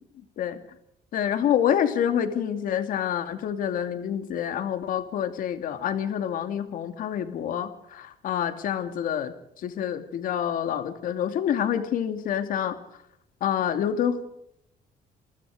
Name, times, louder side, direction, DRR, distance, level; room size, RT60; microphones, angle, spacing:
voice 1, 1.1-12.8 13.4-14.2, left 9 dB, 65° left, 8 dB, 2.5 m, -27 dB
29.0 x 24.0 x 4.9 m, 0.77 s
cardioid pair, 165°, 16 cm